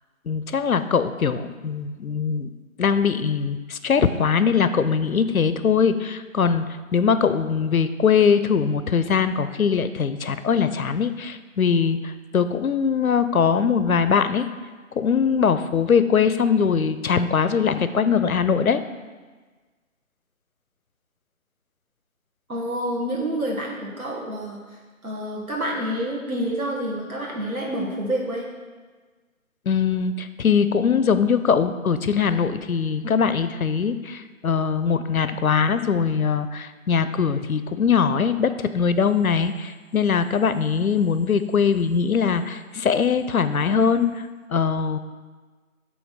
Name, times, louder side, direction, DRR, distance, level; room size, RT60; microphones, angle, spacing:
voice 1, 0.3-2.5 2.8-6.6 6.9-14.5 14.9-18.8 29.7-44.2 44.5-45.0, left 6 dB, 85° left, 11 dB, 0.6 m, -21 dB
voice 2, 22.5-24.6 25.0-28.5, right 1 dB, 90° right, -3 dB, 1.6 m, -28 dB
7.8 x 3.0 x 5.7 m, 1.4 s
figure-of-eight pair, 170°, 41 cm